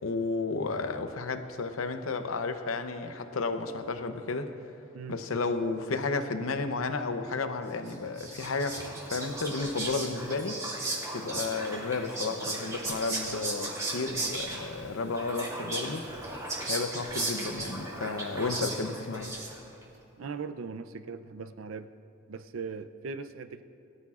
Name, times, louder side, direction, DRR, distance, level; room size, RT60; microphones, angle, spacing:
voice 1, 0.0-4.5 5.1-10.6 11.1-16.0 16.7-19.4, left 3 dB, 80° left, 0.7 m, -32 dB
Whispering, 7.9-19.8, right 2 dB, 15° right, 2.2 m, -36 dB
voice 2, 20.2-21.9 22.3-23.6, right 5 dB, 75° right, 0.5 m, -39 dB
21.0 x 14.0 x 2.5 m
head